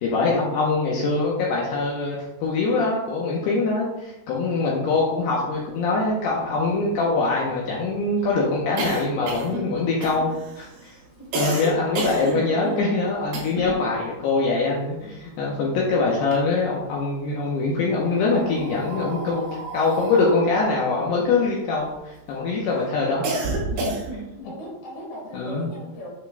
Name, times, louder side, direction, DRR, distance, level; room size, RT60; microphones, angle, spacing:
voice 1, 0.0-10.3 10.6-10.9 11.4-23.3 23.6-23.7 24.1-24.5 25.3-25.7, left 3 dB, 85° left, -3 dB, 2.3 m, -23 dB
sound 1, 5.6-5.7 6.0-6.1 6.4-13.9 14.1-15.7 16.1-17.0 17.7-22.2 22.6-24.4, right 2 dB, 60° right, 2.8 m, -31 dB
voice 2, 24.4-26.1, left 1 dB, 65° left, -2 dB, 3.3 m, -38 dB
8.1 x 5.9 x 2.3 m, 0.94 s
omnidirectional pair, 5.8 m